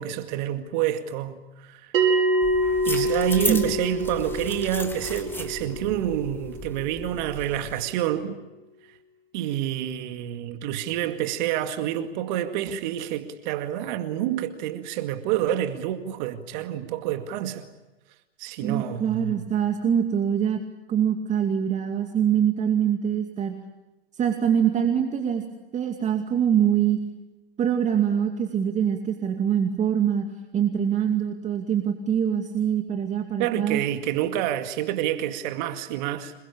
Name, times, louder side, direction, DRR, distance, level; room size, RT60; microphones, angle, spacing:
voice 1, 0.0-1.9 2.8-8.4 9.3-17.7 18.4-19.5 33.4-36.3, right 12 dB, 50° right, 2.2 m, -28 dB
Bell, 1.9-7.0, right 1 dB, 65° right, 5.9 m, -26 dB
sound 1, 2.4-7.8, left 1 dB, 5° left, 3.2 m, -35 dB
voice 2, 18.6-20.6 20.9-23.5 24.1-25.4 25.7-27.0 27.6-30.2 30.5-33.8, right 9 dB, 25° right, 2.5 m, -24 dB
27.5 x 22.0 x 8.6 m
hypercardioid pair, 110°, 31 cm